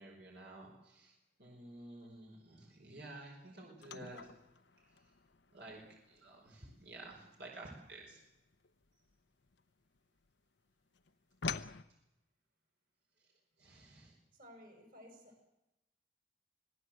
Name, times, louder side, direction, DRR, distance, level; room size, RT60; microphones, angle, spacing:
voice 1, 0.0-4.2 5.5-8.2 13.6-14.2, right 2 dB, 70° right, -1 dB, 5.3 m, -52 dB
sound 1, 3.8-10.3 10.6-11.8, left 5 dB, 80° left, 0.9 m, -46 dB
voice 2, 14.3-15.5, equal, 50° right, 4 dB, 6.0 m, -56 dB
25.5 x 17.0 x 7.9 m, 0.94 s
head